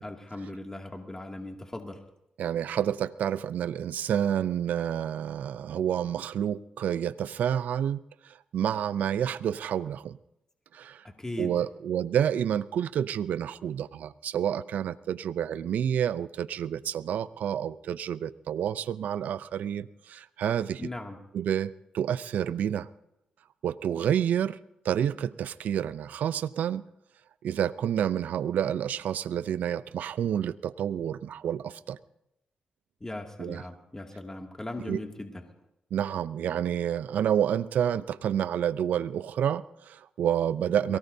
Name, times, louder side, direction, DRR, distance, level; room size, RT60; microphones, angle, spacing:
voice 1, 0.0-2.0 11.0-11.5 20.8-21.2 33.0-35.5 40.9-41.0, left 2 dB, 20° left, 2 dB, 2.4 m, -38 dB
voice 2, 2.4-8.0 8.3-10.2 10.7-11.0 11.4-20.8 21.3-22.9 23.6-24.6 24.8-26.8 27.4-32.0 33.4-33.6 34.8-35.0 35.9-41.0, right 9 dB, 80° right, 15 dB, 0.5 m, -29 dB
23.0 x 18.0 x 2.8 m, 0.80 s
cardioid pair, 60°, 3 cm